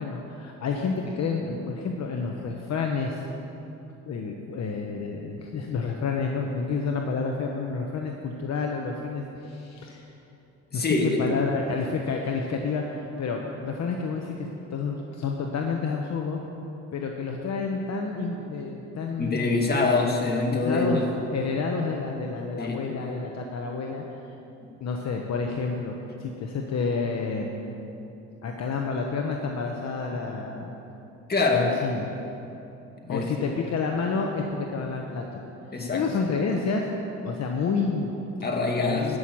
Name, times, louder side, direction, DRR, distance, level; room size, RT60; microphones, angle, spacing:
voice 1, 0.0-3.2 4.1-10.1 10.7-16.4 16.9-19.8 20.5-21.0 21.3-24.0 24.8-27.6 28.4-30.7 31.5-32.1 33.1-35.4 35.9-36.9 37.2-38.4 38.8-39.2, left 4 dB, 60° left, 1 dB, 1.1 m, -29 dB
voice 2, 10.7-11.2 19.2-21.1 22.6-22.8 31.3-31.7 33.1-33.3 35.7-36.1 38.4-39.2, left 3 dB, 30° left, 0 dB, 2.2 m, -24 dB
14.0 x 6.4 x 8.6 m, 2.9 s
cardioid pair, 90°, 30 cm